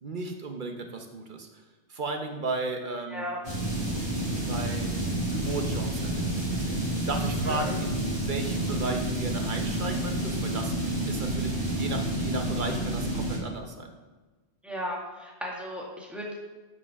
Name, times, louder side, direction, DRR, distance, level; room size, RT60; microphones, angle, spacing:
voice 1, 0.0-1.6 1.9-3.2 4.3-4.9 5.3-13.9, right 3 dB, 45° right, 4 dB, 1.1 m, -35 dB
sound 1, 3.4-13.4, right 1 dB, 30° right, 2.6 m, -29 dB
voice 2, 7.5-7.8 14.6-16.4, equal, ahead, -3 dB, 1.9 m, -35 dB
8.1 x 5.8 x 5.9 m, 1.3 s
omnidirectional pair, 1.2 m